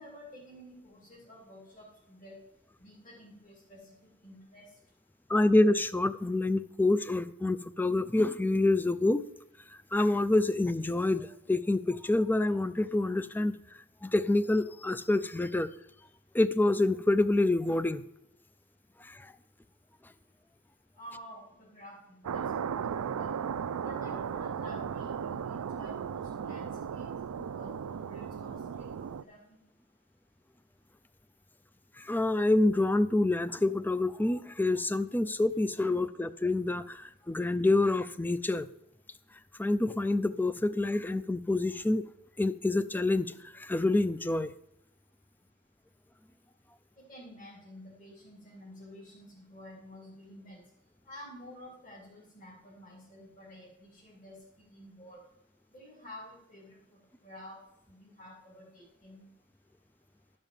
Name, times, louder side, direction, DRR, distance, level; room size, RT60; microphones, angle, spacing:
voice 1, 0.0-2.4 2.8-3.9 4.2-4.7 21.0-23.3 23.8-27.1 27.5-29.6 47.1-50.6 51.1-55.2 55.7-56.8 57.2-57.6 57.9-59.3, equal, 35° left, -6 dB, 2.7 m, -50 dB
voice 2, 5.3-9.2 9.9-13.6 14.0-15.7 16.3-18.0 19.0-19.3 32.0-38.7 39.6-42.1 42.4-44.5, left 2 dB, 10° left, 14 dB, 0.3 m, -27 dB
sound 1, 22.2-29.2, right 7 dB, 80° right, 0.4 m, -36 dB
12.0 x 5.4 x 7.2 m, 0.82 s
head